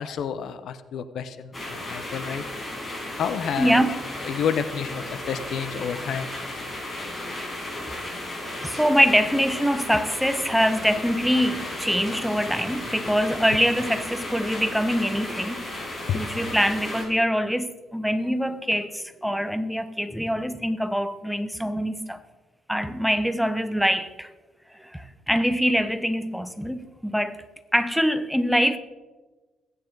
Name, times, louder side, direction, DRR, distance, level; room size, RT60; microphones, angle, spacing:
voice 1, 0.0-2.4 3.2-3.8 4.2-6.3 16.1-16.2, left 8 dB, 70° left, 0.9 m, -29 dB
sound 1, 1.5-17.0, left 1 dB, 25° left, 5.3 m, -34 dB
voice 2, 3.6-4.0 8.6-15.6 16.1-22.2 22.7-24.3 24.7-27.4 27.7-28.8, equal, ahead, 1.0 m, -24 dB
21.5 x 9.4 x 3.9 m
cardioid pair, 90°, 0 cm